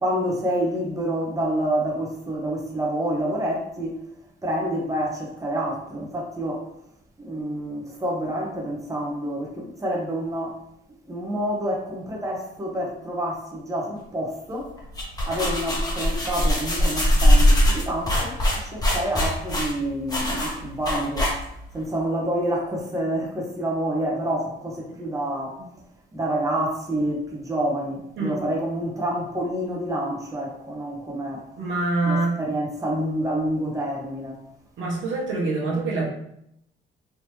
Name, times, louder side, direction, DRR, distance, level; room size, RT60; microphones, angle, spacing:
voice 1, 0.0-3.9 4.4-6.7 7.2-10.6 11.1-14.7 15.3-21.3 21.7-25.6 26.1-31.4 32.0-34.4, right 1 dB, 15° right, -2 dB, 0.9 m, -28 dB
sound 1, 14.8-21.7, left 1 dB, 20° left, 1.1 m, -21 dB
voice 2, 31.6-32.4 34.8-36.1, right 3 dB, 75° right, -3 dB, 1.1 m, -25 dB
3.5 x 2.7 x 3.0 m, 0.77 s
cardioid pair, 90°, 20 cm